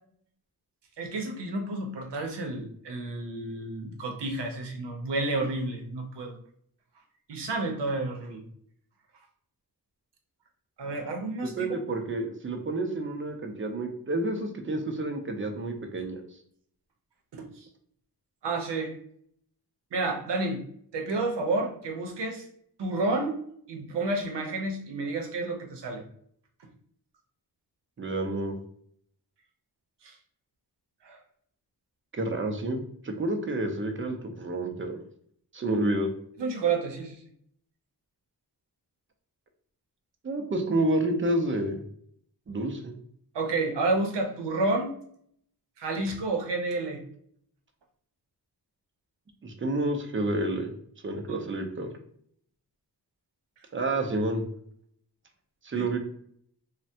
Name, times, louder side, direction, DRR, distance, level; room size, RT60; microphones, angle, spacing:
voice 1, 1.0-6.4 7.3-8.4 10.8-11.7 17.3-17.7 18.4-18.9 19.9-20.6 20.9-22.4 22.8-23.4 23.7-26.0 30.0-30.2 31.0-31.2 35.9-36.0 36.4-37.2 43.3-45.0 45.8-47.0 51.3-51.4 55.7-55.9, right 2 dB, 85° right, 3 dB, 0.7 m, -30 dB
voice 2, 11.6-16.2 28.0-28.5 32.2-35.0 35.5-36.1 40.2-41.8 42.5-43.0 49.4-50.7 51.0-51.9 53.7-54.4 55.6-56.0, right 2 dB, 30° right, 4 dB, 0.4 m, -29 dB
3.3 x 2.1 x 2.7 m, 0.65 s
wide cardioid pair, 120°, 40 cm